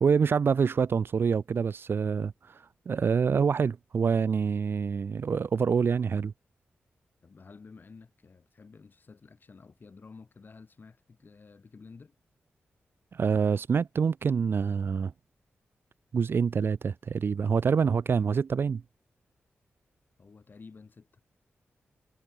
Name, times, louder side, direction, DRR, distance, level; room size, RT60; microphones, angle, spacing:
voice 1, 0.0-6.3 13.1-15.1 16.1-18.8, right 6 dB, 60° right, 0.6 m, -26 dB
voice 2, 7.2-12.2 20.2-21.4, left 4 dB, 50° left, 2.6 m, -51 dB
cardioid pair, 65°, 4 cm